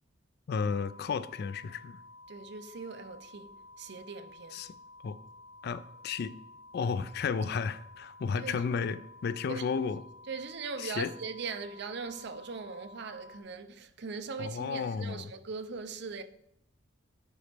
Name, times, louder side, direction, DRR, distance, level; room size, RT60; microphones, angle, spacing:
voice 1, 0.5-2.0 4.5-4.7 5.0-5.2 5.6-6.3 6.7-10.0 10.8-11.1 14.4-15.3, left 5 dB, 55° left, 0.3 m, -33 dB
sound 1, 0.5-13.4, left 2 dB, 20° right, 1.1 m, -53 dB
voice 2, 2.3-4.6 8.4-8.6 9.5-9.7 10.3-16.2, right 4 dB, 60° right, 0.6 m, -40 dB
9.3 x 4.0 x 3.4 m
head